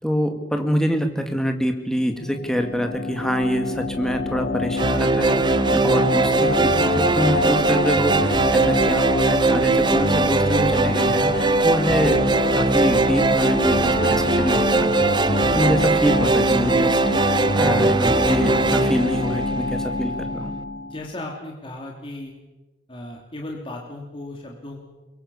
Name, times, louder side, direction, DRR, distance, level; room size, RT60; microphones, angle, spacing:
voice 1, 0.0-20.5, equal, 5° left, 5 dB, 2.2 m, -25 dB
sound 1, 2.1-21.0, left 3 dB, 50° left, 1.1 m, -27 dB
sound 2, 4.8-20.0, right 3 dB, 25° right, 0.8 m, -20 dB
voice 2, 20.8-22.3 22.9-24.9, left 1 dB, 30° left, -1 dB, 3.0 m, -36 dB
23.0 x 23.0 x 7.1 m, 1.1 s
head